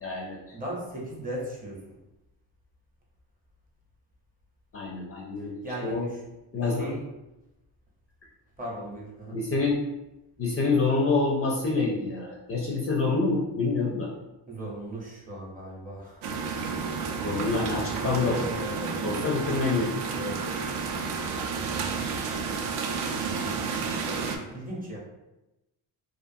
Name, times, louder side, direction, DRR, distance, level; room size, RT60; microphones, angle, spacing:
voice 1, 0.0-0.4 4.7-5.6 5.8-6.1 6.5-7.0 9.3-9.8 10.4-14.1 17.2-18.4 19.0-19.9, left 3 dB, 35° left, -2 dB, 0.4 m, -27 dB
voice 2, 0.5-1.8 5.4-6.2 6.7-7.0 8.6-9.4 14.5-16.4 17.9-19.7 20.1-20.6 24.0-25.0, right 1 dB, 20° right, -4 dB, 0.7 m, -37 dB
sound 1, 16.2-24.4, right 5 dB, 80° right, 0.5 m, -31 dB
2.5 x 2.4 x 2.5 m, 0.97 s
cardioid pair, 120°, 42 cm